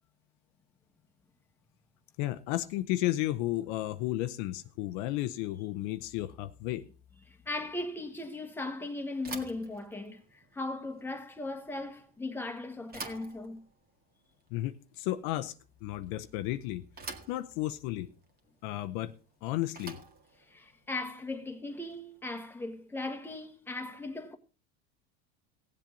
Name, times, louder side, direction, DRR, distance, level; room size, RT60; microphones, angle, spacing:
voice 1, 2.2-6.9 14.5-15.5 15.8-16.8 17.3-18.1 18.6-19.1 19.4-20.0, left 15 dB, 70° left, 0.8 m, -33 dB
voice 2, 7.3-13.6 20.5-24.4, left 2 dB, 5° left, 1.5 m, -38 dB
Bicycle / Thump thud, 9.2-22.3, right 4 dB, 30° right, 1.9 m, -49 dB
18.0 x 7.6 x 3.9 m
supercardioid pair, 115°, 31 cm